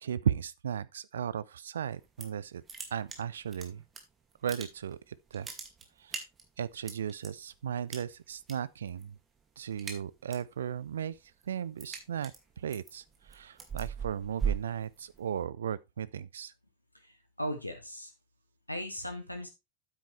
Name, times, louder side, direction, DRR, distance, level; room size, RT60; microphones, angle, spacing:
voice 1, 0.0-2.6 2.9-3.8 4.4-5.5 6.0-6.3 6.6-9.2 9.6-11.2 11.5-16.5, right 8 dB, 65° right, 0.4 m, -36 dB
sound 1, 1.9-2.4 2.7-4.0 4.3-5.0 5.3-7.3 7.9-8.5 8.8-9.2 9.5-10.5 10.9-15.4, right 6 dB, 20° right, 2.2 m, -38 dB
voice 2, 16.9-18.1 18.7-19.5, equal, 85° left, 1.1 m, -38 dB
9.3 x 8.4 x 3.3 m
figure-of-eight pair, 90°, 0 cm